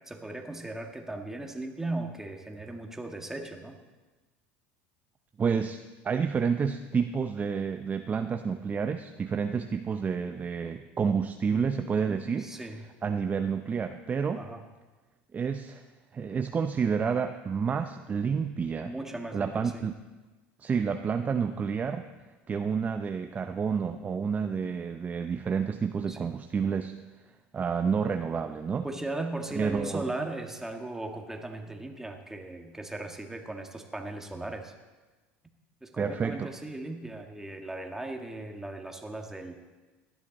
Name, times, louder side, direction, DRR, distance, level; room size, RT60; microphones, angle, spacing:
voice 1, 0.1-3.8 12.1-12.8 14.4-14.7 18.8-19.8 26.1-26.3 28.8-34.7 35.8-39.5, right 2 dB, 5° right, 4 dB, 1.7 m, -37 dB
voice 2, 5.4-5.8 6.0-12.5 13.0-14.4 15.3-15.8 16.1-18.9 19.3-19.9 20.6-22.0 22.5-26.9 27.5-28.9 29.5-30.0 36.0-36.5, right 6 dB, 25° right, 7 dB, 0.6 m, -29 dB
17.5 x 12.0 x 4.1 m, 1.2 s
supercardioid pair, 95°, 6 cm